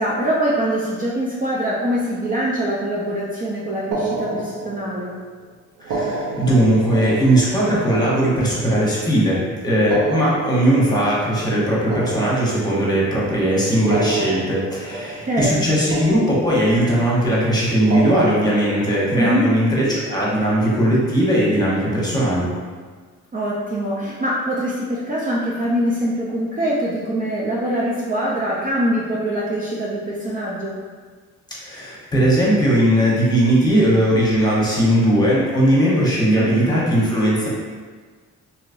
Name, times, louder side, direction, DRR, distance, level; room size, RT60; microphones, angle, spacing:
voice 1, 0.0-5.1 15.3-15.8 19.1-19.5 23.3-30.7 36.3-36.6, right 1 dB, 30° right, -6 dB, 0.5 m, -23 dB
sound 1, 3.9-5.1 5.8-9.1 9.8-13.1 13.8-15.6 15.9-17.0 17.8-19.6, right 3 dB, 80° right, 0.7 m, -29 dB
voice 2, 5.8-22.5 31.6-37.5, right 1 dB, 15° left, -6 dB, 1.1 m, -18 dB
3.1 x 2.9 x 2.6 m, 1.5 s
cardioid pair, 90°, 30 cm